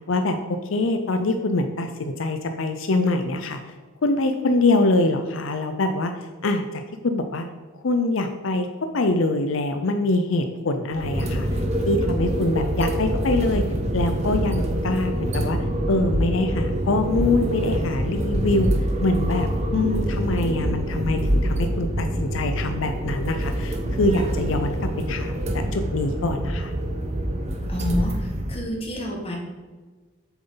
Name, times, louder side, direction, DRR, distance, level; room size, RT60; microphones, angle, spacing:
voice 1, 0.1-3.6 4.0-6.1 6.4-7.4 7.8-8.7 8.9-11.5 11.8-13.6 13.9-15.6 15.9-18.7 19.0-26.7, left 2 dB, 75° left, 7 dB, 0.6 m, -24 dB
sound 1, 10.9-28.6, equal, 35° right, 0.9 m, -25 dB
voice 2, 27.7-29.4, left 1 dB, 30° left, 0 dB, 1.6 m, -29 dB
7.9 x 7.0 x 3.9 m, 1.3 s
head